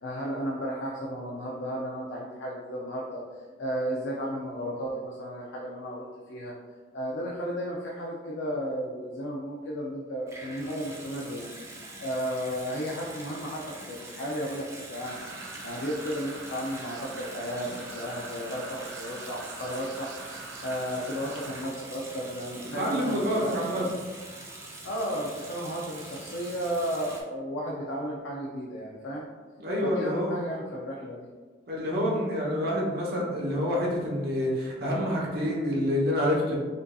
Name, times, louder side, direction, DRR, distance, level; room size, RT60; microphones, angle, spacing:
voice 1, 0.0-6.5 6.9-15.2 15.6-23.9 24.8-29.3 29.8-31.3, equal, 80° left, -4 dB, 0.5 m, -34 dB
Water tap faucet / Sink (filling or washing) / Bathtub (filling or washing), 10.3-27.2, right 2 dB, 15° right, 0.6 m, -44 dB
sound 1, 15.0-21.6, right 3 dB, 70° right, 0.5 m, -43 dB
voice 2, 22.8-23.8 29.6-30.3 31.7-36.6, equal, 55° right, -3 dB, 0.9 m, -27 dB
5.1 x 2.6 x 2.3 m, 1.4 s
head